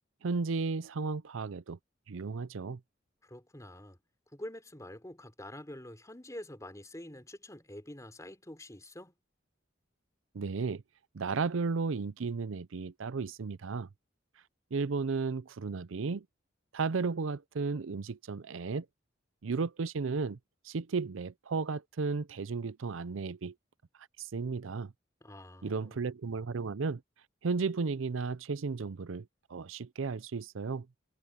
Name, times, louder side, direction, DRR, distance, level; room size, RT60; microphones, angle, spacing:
voice 1, 0.2-1.8 2.1-2.8 10.3-10.8 11.1-13.9 14.7-16.3 16.7-18.9 19.4-20.4 20.6-23.5 24.2-24.9 25.6-27.0 27.4-30.9, right 4 dB, 85° right, 0.6 m, -34 dB
voice 2, 3.2-4.0 4.3-9.1 25.2-26.0, left 1 dB, 15° left, 4.1 m, -46 dB
head